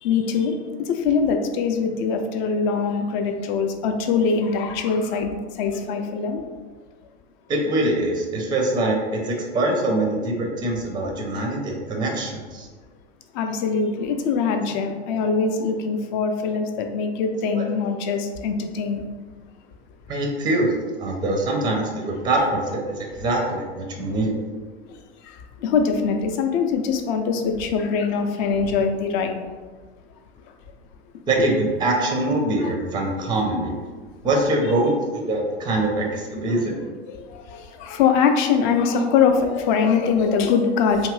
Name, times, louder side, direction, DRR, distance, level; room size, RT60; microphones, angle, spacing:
voice 1, 0.0-6.4 13.3-19.1 25.2-25.4 25.6-29.4 32.6-32.7 37.1-41.1, left 5 dB, 45° left, 5 dB, 0.5 m, -23 dB
voice 2, 7.5-12.7 17.5-17.6 20.1-24.3 31.3-33.7 34.2-36.9, right 2 dB, 15° right, 0 dB, 0.5 m, -23 dB
2.7 x 2.5 x 3.1 m, 1.4 s
hypercardioid pair, 95°, 33 cm